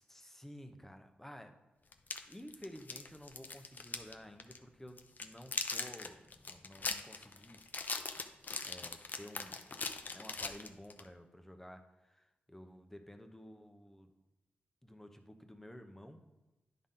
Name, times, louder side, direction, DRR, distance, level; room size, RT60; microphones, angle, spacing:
voice 1, 0.0-1.5 2.3-7.6 8.6-9.7 10.1-14.1 14.8-16.2, equal, 10° left, 5 dB, 0.8 m, -53 dB
sound 1, 1.9-4.1 4.4-4.6 5.0-11.1, left 4 dB, 50° left, 0.6 m, -40 dB
10.0 x 4.0 x 3.8 m, 1.0 s
cardioid pair, 65°, 4 cm